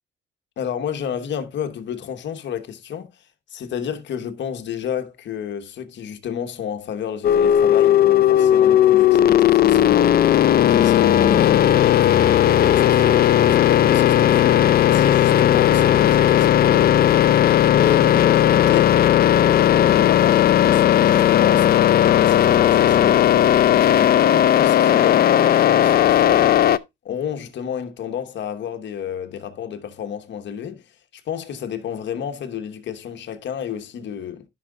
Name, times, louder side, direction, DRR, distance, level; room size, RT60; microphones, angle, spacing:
voice 1, 0.6-3.1 3.5-10.3 10.7-17.2 17.7-19.0 19.7-26.6 27.0-30.8 31.1-34.5, left 8 dB, 65° left, 1.2 m, -30 dB
sound 1, 7.2-26.8, left 11 dB, 50° left, 0.4 m, -16 dB
13.0 x 5.8 x 2.3 m
cardioid pair, 90°, 20 cm